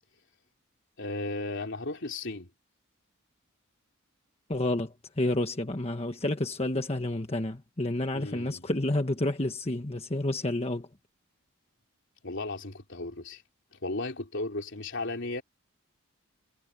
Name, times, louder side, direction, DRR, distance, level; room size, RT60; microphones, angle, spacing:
voice 1, 1.0-2.5 8.1-8.7 12.2-13.4 13.7-15.4, left 2 dB, 60° left, 3.5 m, -35 dB
voice 2, 4.5-10.9, left 1 dB, 30° left, 1.3 m, -30 dB
head